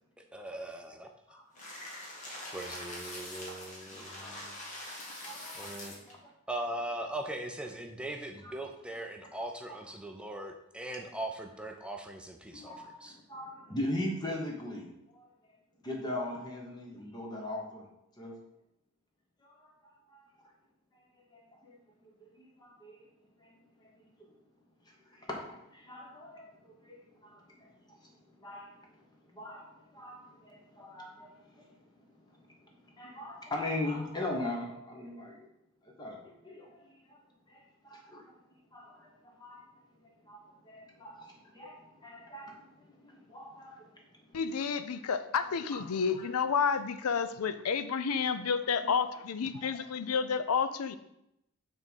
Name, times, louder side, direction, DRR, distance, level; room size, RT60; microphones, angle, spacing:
voice 1, 0.3-1.1 2.5-4.5 5.6-5.9 6.5-13.1, right 1 dB, 5° right, 3 dB, 0.5 m, -40 dB
sound 1, 1.5-6.1, left 1 dB, 35° left, 1.6 m, -44 dB
voice 2, 3.9-4.4 4.8-4.9 5.2-5.7 6.1-6.2 8.4-8.5 9.2-9.3 11.0-11.2 12.5-15.3 15.8-17.9 18.2-18.4 19.4-19.7 20.1-20.3 21.3-21.8 22.2-23.0 23.4-23.5 23.8-23.9 25.1-28.1 28.4-28.8 29.3-31.8 32.8-35.5 36.0-36.2 36.4-36.8 37.1-37.2 37.5-38.4 38.7-39.7 40.2-44.0 45.7-45.8 46.1-46.2 49.5-49.9, left 1 dB, 20° left, 0 dB, 1.1 m, -40 dB
voice 3, 44.3-51.0, left 6 dB, 85° left, 11 dB, 0.5 m, -30 dB
6.5 x 3.6 x 6.2 m, 0.82 s
head